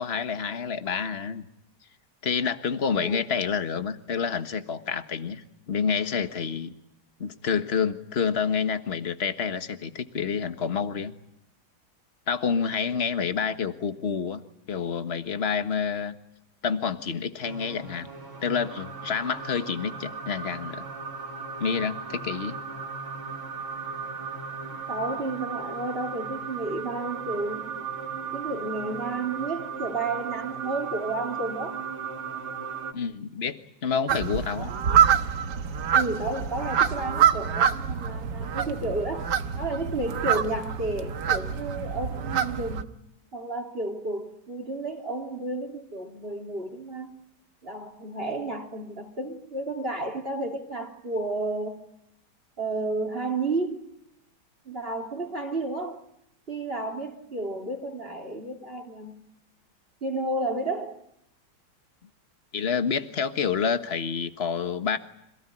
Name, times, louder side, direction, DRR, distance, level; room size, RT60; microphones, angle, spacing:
voice 1, 0.0-1.5 2.2-6.7 7.2-11.1 12.3-14.4 14.7-16.1 16.6-18.1 18.4-20.9 21.6-22.6 32.9-34.7 62.5-65.0, left 6 dB, 35° left, 1.5 m, -28 dB
sound 1, 17.4-32.9, right 6 dB, 75° right, 3.9 m, -36 dB
voice 2, 24.9-27.7 28.3-31.8 34.6-34.7 35.9-39.3 39.6-42.9 43.3-47.1 47.6-51.8 52.6-53.9 54.6-56.0 56.5-59.1 60.0-61.0, right 2 dB, 25° right, 3.2 m, -32 dB
sound 2, 34.1-42.8, right 8 dB, 60° right, 1.7 m, -25 dB
27.0 x 17.5 x 10.0 m
omnidirectional pair, 2.2 m